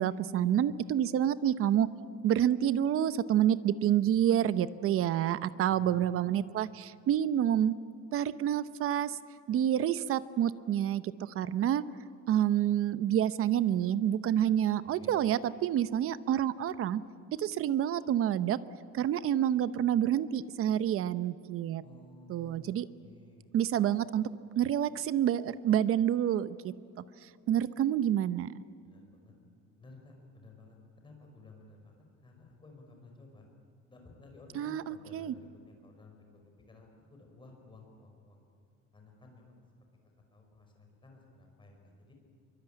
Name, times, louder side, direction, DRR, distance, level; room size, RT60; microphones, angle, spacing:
voice 1, 0.0-1.9 2.2-7.7 8.1-9.2 9.5-11.8 12.3-17.0 17.4-18.6 18.9-21.8 22.3-22.9 23.5-24.3 24.6-26.7 27.5-28.5 34.5-35.3, right 10 dB, 45° right, 15 dB, 0.8 m, -28 dB
voice 2, 5.7-6.1 14.8-15.1 21.8-23.5 28.8-29.3 29.8-33.5 33.9-38.4 38.9-39.6 40.3-42.1, left 2 dB, 15° left, 2 dB, 5.3 m, -55 dB
25.0 x 23.5 x 9.1 m, 2.5 s
cardioid pair, 170°, 31 cm